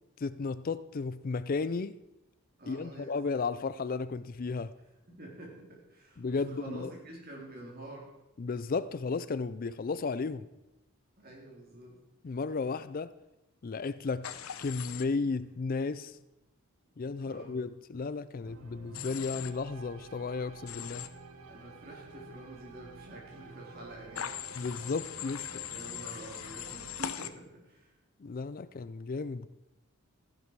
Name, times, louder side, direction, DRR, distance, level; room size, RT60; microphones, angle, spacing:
voice 1, 0.2-2.0 2.7-4.7 6.2-6.9 8.4-10.5 12.2-13.1 13.6-14.3 14.6-16.2 17.0-21.1 24.5-25.6 28.2-29.5, left 4 dB, 40° left, 0.4 m, -34 dB
voice 2, 2.6-3.1 5.1-8.1 11.2-12.0 17.2-17.6 21.5-24.3 25.7-27.9, right 1 dB, 45° right, 3.6 m, -48 dB
Human voice / Train, 14.2-15.0 18.9-19.5 20.7-21.1 24.2-27.3, left 9 dB, 75° left, 0.8 m, -40 dB
sound 1, 18.4-27.0, right 3 dB, 85° right, 1.2 m, -51 dB
14.5 x 11.0 x 4.7 m
head